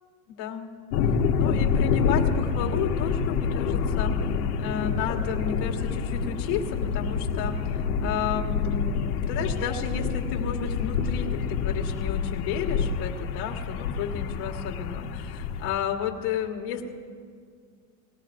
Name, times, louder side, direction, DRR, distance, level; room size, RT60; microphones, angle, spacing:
voice 1, 0.4-0.7 1.4-4.1 4.6-16.8, left 7 dB, 50° left, 0 dB, 1.6 m, -32 dB
sound 1, 0.9-15.7, left 6 dB, 75° left, 1.2 m, -27 dB
19.5 x 15.5 x 2.6 m, 2.1 s
supercardioid pair, 150°, 45 cm